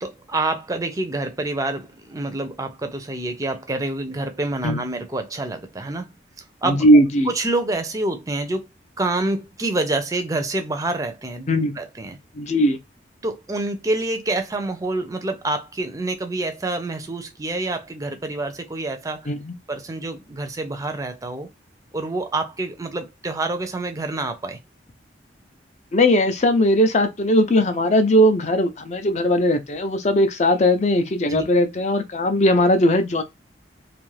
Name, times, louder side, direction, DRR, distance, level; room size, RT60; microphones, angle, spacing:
voice 1, 0.0-6.1 6.6-6.8 7.3-8.7 9.0-12.2 13.2-19.3 19.7-21.5 21.9-24.6 31.3-31.4, right 2 dB, 20° right, 0.5 m, -27 dB
voice 2, 6.6-7.3 11.5-11.7 12.3-12.8 19.3-19.5 25.9-33.2, equal, 40° left, 0.5 m, -18 dB
2.6 x 2.4 x 3.2 m
head